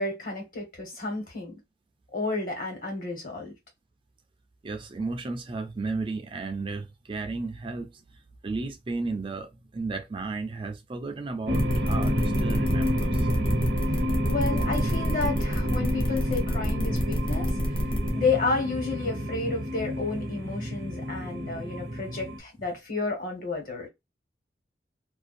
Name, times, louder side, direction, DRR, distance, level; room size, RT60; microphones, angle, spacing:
voice 1, 0.0-1.6 2.1-3.5 14.3-23.9, left 3 dB, 50° left, 1.3 m, -31 dB
voice 2, 4.6-7.9 8.4-13.3, right 3 dB, 30° right, 0.4 m, -34 dB
sound 1, 11.5-18.1, equal, 30° left, 0.8 m, -29 dB
sound 2, 11.5-22.4, equal, 75° right, 0.7 m, -29 dB
2.6 x 2.2 x 2.4 m
head